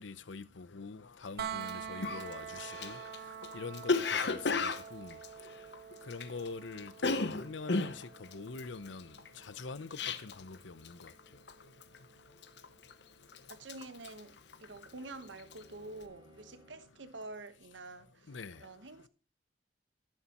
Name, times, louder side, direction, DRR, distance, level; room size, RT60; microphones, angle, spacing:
voice 1, 0.0-3.0 3.5-5.2 6.1-9.1 9.4-11.1 18.3-18.6, left 4 dB, 85° left, 0.7 m, -44 dB
sound 1, 1.4-13.2 15.1-15.2, right 7 dB, 60° right, 0.6 m, -47 dB
Cough, 1.6-1.7 2.0-6.5 6.7-10.6 10.8-11.2 11.5-12.0 12.4-13.0 13.3-15.0 15.3-15.6, left 3 dB, 65° left, 0.9 m, -34 dB
Bowed string instrument, 13.2-17.0, equal, 25° right, 3.8 m, -63 dB
voice 2, 13.5-14.3 14.6-19.1, right 2 dB, 85° right, 1.2 m, -48 dB
11.0 x 11.0 x 3.0 m
head